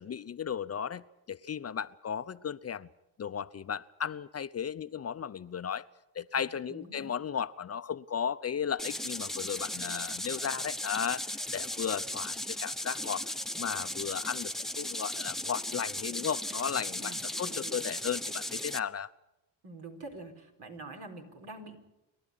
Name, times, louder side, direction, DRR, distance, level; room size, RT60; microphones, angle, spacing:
voice 1, 0.0-2.9 3.2-5.8 6.2-13.3 13.6-19.1, left 7 dB, 35° left, 14 dB, 0.7 m, -35 dB
voice 2, 6.3-7.1 17.0-17.8 19.6-21.8, right 2 dB, 65° right, 3 dB, 4.4 m, -46 dB
sound 1, 8.8-18.8, left 1 dB, ahead, 1.0 m, -36 dB
27.0 x 12.0 x 10.0 m, 0.95 s
supercardioid pair, 65°, 42 cm